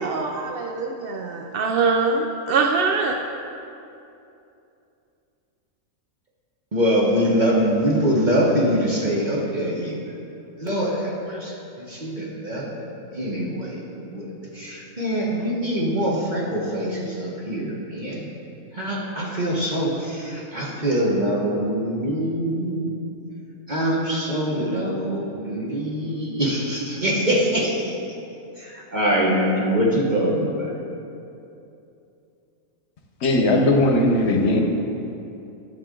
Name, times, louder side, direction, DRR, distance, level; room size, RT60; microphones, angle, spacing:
voice 1, 0.0-3.2, right 4 dB, 75° right, 3 dB, 0.5 m, -23 dB
voice 2, 6.7-10.0 10.6-14.3 14.5-18.3 18.7-22.9 23.7-28.0 28.6-30.9, equal, 35° right, -4 dB, 1.2 m, -24 dB
voice 3, 33.2-34.6, left 1 dB, 55° left, 2 dB, 1.1 m, -18 dB
11.0 x 6.9 x 3.8 m, 2.7 s
omnidirectional pair, 1.5 m